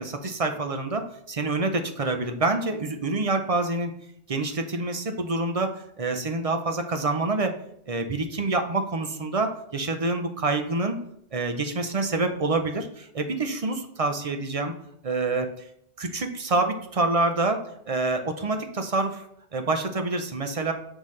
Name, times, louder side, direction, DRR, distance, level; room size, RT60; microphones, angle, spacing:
voice 1, 0.0-3.9 4.3-7.5 7.9-11.0 11.3-14.7 15.0-15.5 16.0-17.6 17.9-19.2 19.5-20.7, right 3 dB, 40° right, 6 dB, 0.6 m, -27 dB
7.1 x 5.5 x 3.2 m, 0.70 s
omnidirectional pair, 1.0 m